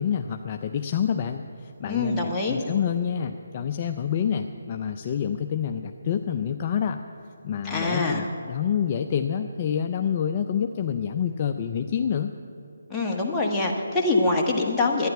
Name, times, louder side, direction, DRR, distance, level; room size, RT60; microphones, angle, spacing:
voice 1, 0.0-7.0 7.4-12.3, left 8 dB, 30° left, 6 dB, 0.4 m, -27 dB
voice 2, 1.9-2.6 7.6-8.3 12.9-15.1, left 2 dB, 10° left, -3 dB, 1.3 m, -24 dB
11.5 x 10.0 x 8.1 m, 2.6 s
figure-of-eight pair, 155°, 0 cm